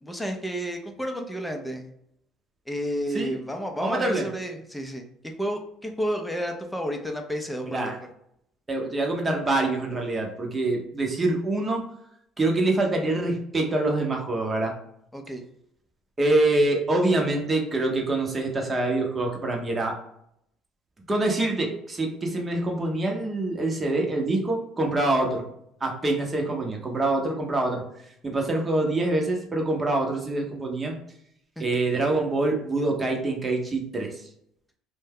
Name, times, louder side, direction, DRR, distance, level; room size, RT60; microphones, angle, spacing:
voice 1, 0.0-1.9 2.7-5.0 5.4-7.9 15.1-15.4 31.6-31.7, equal, 5° left, 3 dB, 0.6 m, -31 dB
voice 2, 3.8-4.3 7.6-8.0 8.7-11.8 12.4-14.7 16.2-20.0 21.1-25.4 25.8-27.8 28.2-31.0 31.6-34.2, right 2 dB, 25° right, 1 dB, 0.8 m, -25 dB
2.6 x 2.2 x 3.5 m, 0.74 s
supercardioid pair, 80°, 0 cm